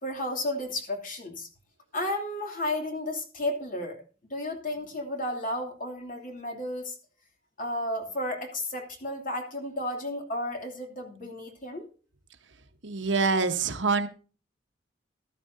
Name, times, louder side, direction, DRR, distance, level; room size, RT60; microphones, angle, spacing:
voice 1, 0.0-1.5 1.9-4.0 4.3-7.0 7.6-11.9, left 1 dB, 45° left, 3 dB, 2.8 m, -33 dB
voice 2, 12.8-14.1, right 4 dB, 70° right, 8 dB, 1.2 m, -25 dB
14.0 x 13.5 x 2.7 m, 0.36 s
head